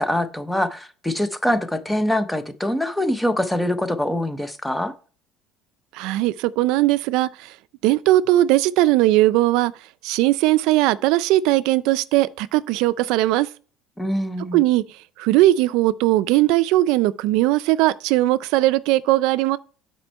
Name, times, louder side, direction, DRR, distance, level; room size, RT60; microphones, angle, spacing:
voice 1, 0.0-4.9 14.0-14.6, left 1 dB, 5° left, 0.6 m, -24 dB
voice 2, 5.9-7.5 7.8-9.7 10.0-13.5 14.5-14.8 15.2-19.6, right 16 dB, 70° right, 0.4 m, -19 dB
8.9 x 4.3 x 4.4 m
cardioid pair, 175°, 0 cm